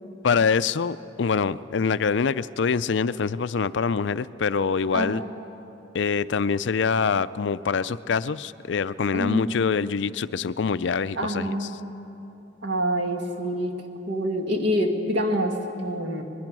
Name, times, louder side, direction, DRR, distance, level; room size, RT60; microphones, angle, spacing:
voice 1, 0.2-5.2 5.9-11.7, left 5 dB, 65° left, 15 dB, 0.4 m, -25 dB
voice 2, 4.9-5.2 9.1-9.6 11.1-11.8 12.6-13.7 14.1-16.2, equal, 60° right, 3 dB, 2.1 m, -26 dB
24.5 x 21.0 x 6.2 m, 3.0 s
head